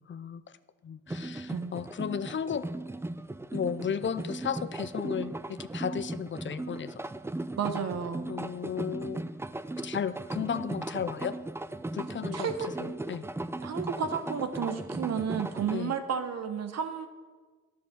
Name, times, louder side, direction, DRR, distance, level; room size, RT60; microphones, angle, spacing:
voice 1, 0.1-0.4 0.8-2.7 3.5-7.0 8.3-9.2 9.8-11.4 11.9-12.5 12.8-13.3 15.7-16.0, left 7 dB, 40° left, 14 dB, 0.5 m, -34 dB
sound 1, 1.1-15.8, right 2 dB, 10° right, 0.5 m, -37 dB
voice 2, 7.6-8.3 12.3-13.0 13.6-17.1, right 7 dB, 60° right, 8 dB, 1.2 m, -32 dB
9.7 x 6.7 x 8.0 m, 1.4 s
supercardioid pair, 60°, 29 cm